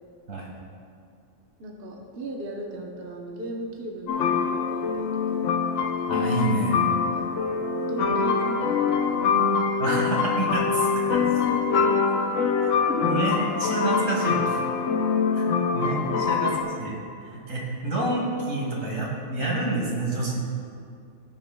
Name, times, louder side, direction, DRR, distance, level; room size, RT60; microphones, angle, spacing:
voice 1, 1.6-5.6 7.0-7.3 7.8-9.7 11.0-12.4 12.6-12.8 13.2-13.3 15.8-16.5, right 1 dB, 50° right, 0 dB, 1.0 m, -37 dB
sound 1, 4.1-16.6, left 5 dB, 75° left, 1.0 m, -24 dB
voice 2, 6.1-6.9 9.8-11.2 12.6-14.6 15.3-16.5 16.8-20.4, right 2 dB, 75° right, -2 dB, 2.1 m, -28 dB
16.5 x 6.9 x 2.2 m, 2.4 s
omnidirectional pair, 1.4 m